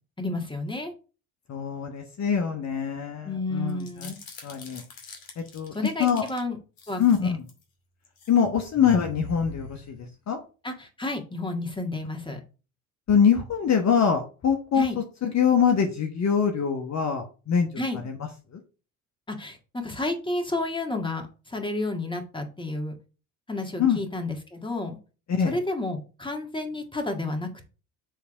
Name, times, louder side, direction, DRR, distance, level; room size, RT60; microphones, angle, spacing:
voice 1, 0.2-0.9 3.2-4.2 5.7-6.6 6.9-7.3 10.6-12.4 14.7-15.0 17.8-18.0 19.3-22.9 23.5-25.0 25.4-27.7, left 2 dB, 10° left, 4 dB, 1.9 m, -31 dB
voice 2, 1.5-4.1 4.4-4.8 5.4-5.7 6.0-6.3 7.0-7.4 8.3-10.4 13.1-17.7 18.0-18.2 23.8-24.0 25.3-25.6, left 7 dB, 45° left, 4 dB, 1.2 m, -24 dB
sound 1, 3.7-6.4 6.8-7.6 8.0-8.4 8.7-10.3, left 3 dB, 60° left, 2.4 m, -42 dB
7.6 x 3.4 x 5.0 m, 0.34 s
hypercardioid pair, 60°, 39 cm